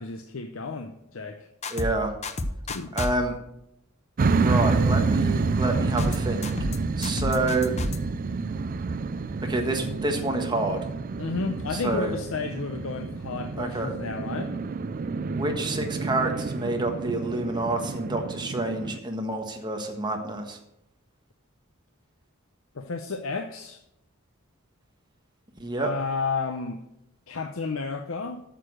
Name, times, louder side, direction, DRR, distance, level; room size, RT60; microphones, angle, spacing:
voice 1, 0.0-1.5 2.7-2.9 11.2-14.6 22.7-23.8 25.8-26.8 27.3-28.4, left 4 dB, 70° left, 6 dB, 0.7 m, -32 dB
sound 1, 1.6-1.9 2.2-3.1 6.0-6.2 6.4-6.8 7.0-8.0, left 2 dB, 30° left, 0.7 m, -30 dB
voice 2, 1.7-2.1 2.9-3.4 4.3-6.5 7.0-7.7 9.5-10.8 11.7-12.1 13.6-13.9 15.3-20.6 25.6-25.9, right 2 dB, 20° right, 3 dB, 1.4 m, -28 dB
sound 2, 4.2-19.0, right 4 dB, 40° right, 0.4 m, -28 dB
8.9 x 6.9 x 6.3 m, 0.84 s
head